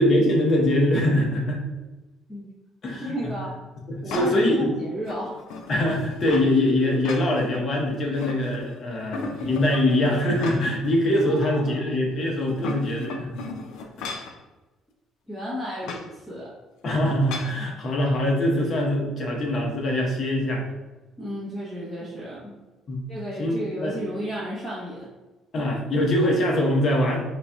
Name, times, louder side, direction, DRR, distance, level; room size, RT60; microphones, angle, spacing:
voice 1, 0.0-1.6 2.8-3.3 3.9-4.8 5.7-13.4 14.0-14.1 16.8-20.7 22.9-23.0 23.4-24.0 25.5-27.2, left 1 dB, 45° left, -1 dB, 1.0 m, -23 dB
voice 2, 3.0-3.5 4.0-5.4 11.2-12.0 15.3-16.5 21.2-22.5 23.1-25.1, equal, 15° left, -9 dB, 1.1 m, -33 dB
sound 1, 4.1-4.5 5.0-6.5 6.9-7.6 8.0-8.7 9.1-10.9 11.3-11.4 12.4-14.4 15.8-16.1 17.3-17.6, left 3 dB, 85° left, 0.4 m, -36 dB
4.2 x 3.8 x 2.3 m, 1.1 s
cardioid pair, 130°, 0 cm